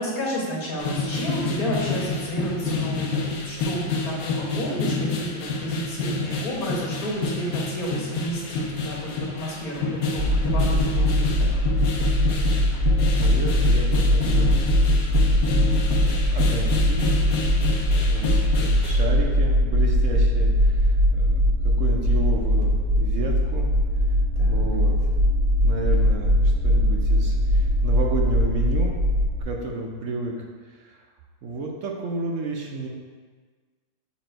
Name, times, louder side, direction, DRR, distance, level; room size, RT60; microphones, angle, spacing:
voice 1, 0.0-11.5 24.4-24.7, equal, 55° left, -3 dB, 1.6 m, -31 dB
sound 1, 0.8-19.1, left 3 dB, 80° left, 1.4 m, -28 dB
sound 2, 10.2-29.4, equal, 15° right, 1.6 m, -21 dB
voice 2, 12.8-14.6 16.3-17.2 17.9-23.7 24.5-25.0 25.6-26.4 26.6-29.0 29.4-30.3 30.8-31.0 31.4-32.9, right 2 dB, 65° right, 0 dB, 0.8 m, -31 dB
7.2 x 3.1 x 4.4 m, 1.5 s
omnidirectional pair, 2.0 m